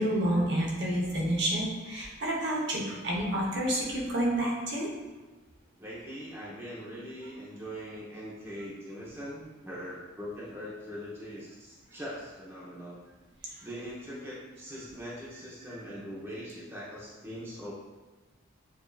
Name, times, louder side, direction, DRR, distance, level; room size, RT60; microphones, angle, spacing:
voice 1, 0.0-4.9, right 1 dB, 55° right, -3 dB, 1.0 m, -29 dB
voice 2, 5.8-13.0 13.6-17.7, equal, 10° right, -7 dB, 0.8 m, -41 dB
7.1 x 2.7 x 2.4 m, 1.2 s
head